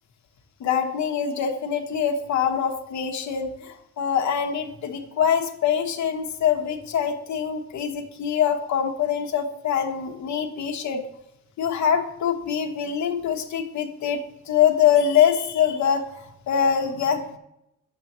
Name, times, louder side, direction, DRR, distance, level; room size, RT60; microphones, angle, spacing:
voice 1, 0.6-11.0 11.6-14.2 14.5-17.4, left 8 dB, 70° left, 3 dB, 1.0 m, -24 dB
9.1 x 7.5 x 3.0 m, 0.81 s
cardioid pair, 90°, 30 cm